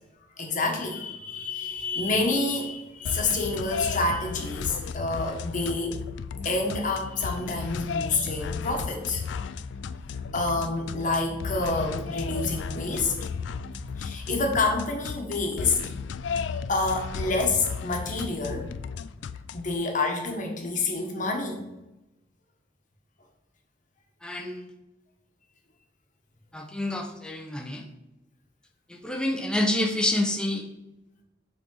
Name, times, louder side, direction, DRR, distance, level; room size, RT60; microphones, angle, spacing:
voice 1, 0.4-6.0 6.4-9.2 10.3-13.1 14.0-15.8 16.7-18.8 19.5-21.7, left 3 dB, 45° left, 1 dB, 1.3 m, -28 dB
sound 1, 3.0-19.7, left 6 dB, 70° left, 0.3 m, -35 dB
sound 2, 6.3-19.6, left 1 dB, 25° right, 0.9 m, -44 dB
voice 2, 24.2-24.7 26.5-27.9 28.9-30.7, left 1 dB, 5° left, 3 dB, 0.7 m, -28 dB
8.0 x 4.2 x 3.9 m, 0.95 s
head